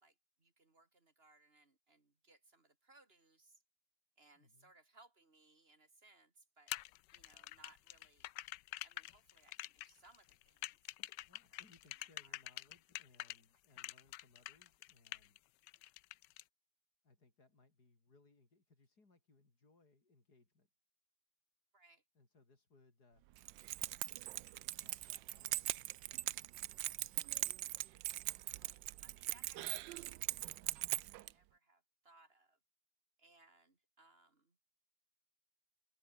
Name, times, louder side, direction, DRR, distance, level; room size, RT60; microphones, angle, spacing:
voice 1, 0.0-3.6 4.2-6.8 7.1-8.3 8.8-10.8 11.5-11.6 12.0-12.4 21.7-22.0 28.7-29.7 30.6-30.7 31.1-32.6 33.2-34.6, right 2 dB, 30° right, 2.9 m, -67 dB
voice 2, 4.3-4.7 11.2-15.4 17.0-20.7 22.1-23.3 24.8-27.3, left 3 dB, 60° left, 4.9 m, -69 dB
sound 1, 6.7-13.4 13.8-15.4 15.7-16.4, left 16 dB, 80° left, 1.2 m, -46 dB
Keys jangling, 23.4-31.3, right 16 dB, 85° right, 1.3 m, -41 dB
omnidirectional pair, 2.0 m